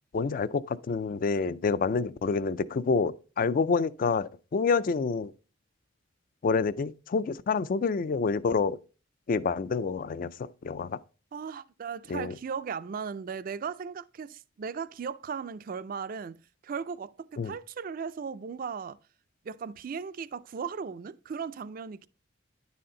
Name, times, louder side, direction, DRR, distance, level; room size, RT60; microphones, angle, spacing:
voice 1, 0.1-5.3 6.4-8.8 9.3-11.0 12.1-12.3 17.4-17.5, left 4 dB, 50° left, 0.3 m, -28 dB
voice 2, 11.3-19.0 19.4-22.1, right 6 dB, 50° right, 0.3 m, -37 dB
10.0 x 4.2 x 3.7 m
head